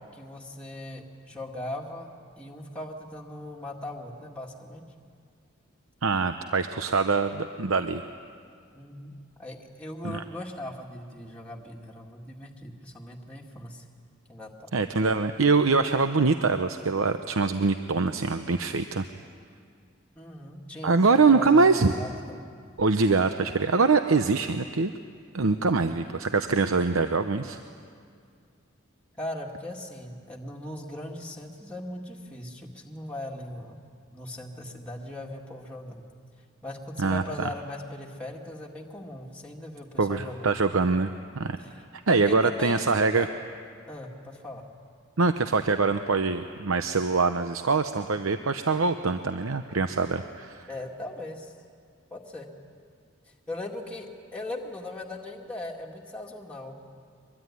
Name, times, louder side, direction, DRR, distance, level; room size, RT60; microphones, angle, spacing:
voice 1, 0.1-2.1 2.4-4.8 8.7-9.1 9.4-13.8 14.3-14.7 20.2-22.4 29.2-33.8 34.1-36.1 36.6-40.5 41.6-41.7 42.1-42.8 43.2-43.3 43.9-44.7 50.7-51.5 52.1-52.5 53.5-57.0, left 1 dB, 5° left, -2 dB, 2.0 m, -39 dB
voice 2, 6.0-8.0 10.0-10.2 14.7-19.0 20.8-21.9 22.8-24.9 25.3-27.6 37.0-37.5 40.0-41.6 41.9-43.3 45.2-50.7, right 4 dB, 85° right, 8 dB, 0.8 m, -24 dB
24.0 x 22.5 x 9.8 m, 2.3 s
head